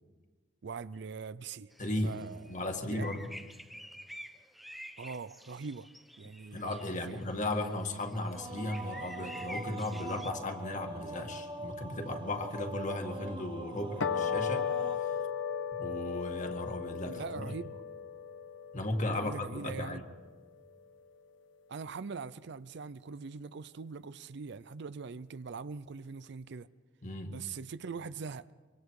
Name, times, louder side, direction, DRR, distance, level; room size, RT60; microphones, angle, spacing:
voice 1, 0.6-1.7 2.0-2.6 2.9-3.1 5.0-5.9 6.2-6.7 7.1-7.3 17.1-17.8 19.1-20.0 21.7-26.7 27.3-28.5, right 5 dB, 65° right, 0.5 m, -42 dB
sound 1, 1.7-10.3, equal, ahead, 1.0 m, -49 dB
voice 2, 1.8-2.2 2.5-3.2 6.5-15.2 15.8-17.5 18.7-20.0 27.0-27.4, left 1 dB, 40° left, 2.0 m, -36 dB
sound 2, 8.3-15.0, right 2 dB, 25° right, 1.1 m, -43 dB
sound 3, 14.0-20.5, left 7 dB, 80° left, 1.1 m, -36 dB
24.5 x 24.5 x 4.8 m
head